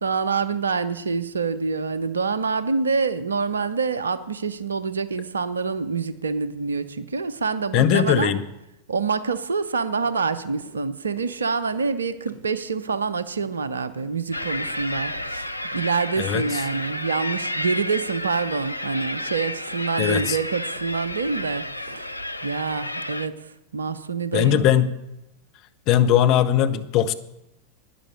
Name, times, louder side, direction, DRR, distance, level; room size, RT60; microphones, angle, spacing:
voice 1, 0.0-8.3 8.9-24.7, right 5 dB, 70° right, 14 dB, 0.7 m, -26 dB
voice 2, 7.7-8.4 16.2-16.6 20.0-20.4 24.3-24.9 25.9-27.1, left 10 dB, 40° left, 9 dB, 0.9 m, -20 dB
sound 1, 10.0-10.2 10.6-10.8 11.2-11.3 11.7-11.9 12.3-12.5 12.9-13.0 13.4-13.6 14.0-14.2 14.6-14.7 15.1-15.3 15.7-15.9 16.3-16.5 16.8-17.0 17.4-17.6 18.0-18.1 18.6-18.7 19.1-19.3 19.7-19.8 20.2-20.4 20.8-20.9 21.3-21.5 21.9-22.0, right 4 dB, 45° right, 4.4 m, -48 dB
sound 2, 14.3-23.3, left 1 dB, 85° left, 0.5 m, -31 dB
11.5 x 10.0 x 6.9 m, 0.90 s
figure-of-eight pair, 90°, 0 cm